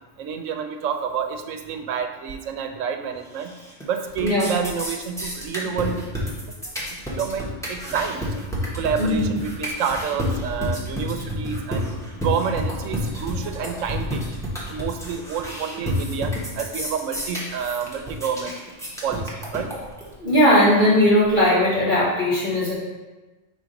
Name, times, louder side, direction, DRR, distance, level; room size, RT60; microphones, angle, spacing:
voice 1, 0.2-3.5 3.9-6.0 7.1-11.9 12.2-18.5 19.0-19.7, right 7 dB, 85° right, 7 dB, 1.0 m, -29 dB
sound 1, 3.4-3.8 4.1-20.1, equal, 5° left, 1.1 m, -30 dB
voice 2, 4.2-4.6 9.0-9.3 20.2-22.7, left 1 dB, 40° left, -7 dB, 1.5 m, -18 dB
4.7 x 3.9 x 5.2 m, 1.2 s
omnidirectional pair, 1.3 m